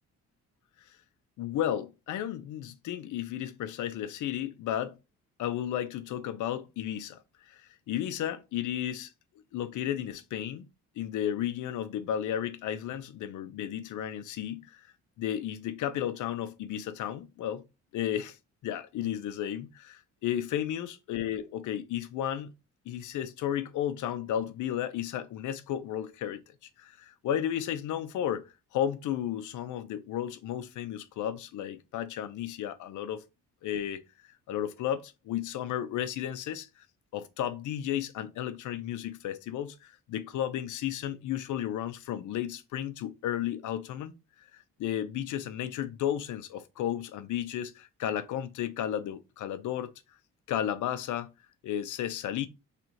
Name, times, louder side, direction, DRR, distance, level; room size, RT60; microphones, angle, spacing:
voice 1, 1.4-5.0 5.4-9.1 9.5-10.7 11.0-14.9 15.2-17.6 17.9-18.4 18.6-22.5 22.9-26.4 26.8-33.2 33.6-34.0 34.5-36.8 37.1-44.1 44.4-49.9 50.5-51.3 51.6-52.5, left 10 dB, 75° left, 0.7 m, -33 dB
3.3 x 3.0 x 3.9 m
cardioid pair, 90°, 30 cm